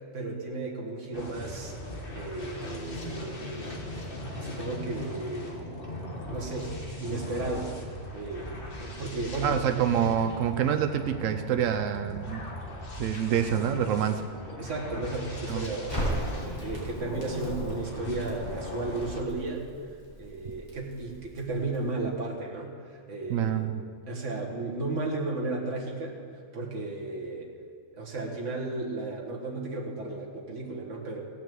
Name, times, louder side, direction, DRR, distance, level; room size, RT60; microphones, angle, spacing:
voice 1, 0.1-1.7 2.1-3.7 4.4-5.8 6.3-6.7 7.0-7.8 8.1-8.5 8.8-9.8 14.6-19.7 20.2-23.7 24.1-26.2 26.5-27.5 27.9-31.2, right 2 dB, 70° right, -2 dB, 2.0 m, -34 dB
sound 1, 1.1-19.2, left 1 dB, 45° left, 1.6 m, -39 dB
voice 2, 9.4-12.4 13.0-14.2 15.5-15.7 23.3-23.8, right 9 dB, 90° right, 8 dB, 1.1 m, -27 dB
Crackle, 15.9-22.0, equal, 15° left, 4.2 m, -37 dB
17.0 x 6.0 x 7.7 m, 2.1 s
omnidirectional pair, 1.3 m